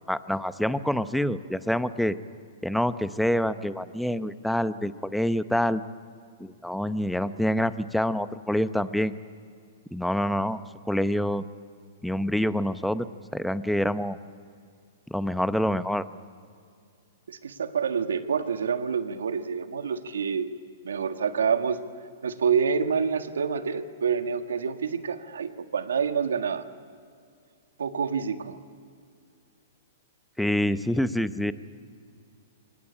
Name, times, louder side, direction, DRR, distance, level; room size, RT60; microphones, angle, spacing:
voice 1, 0.1-2.2 2.6-5.8 6.4-9.1 9.9-10.6 10.9-11.4 12.0-13.1 13.3-14.2 15.1-16.0 30.4-31.5, equal, ahead, 13 dB, 0.7 m, -26 dB
voice 2, 17.3-20.5 20.8-21.8 22.2-26.6 27.8-28.6, right 6 dB, 85° right, 8 dB, 1.5 m, -27 dB
24.0 x 18.5 x 9.9 m, 2.3 s
hypercardioid pair, 130°, 0 cm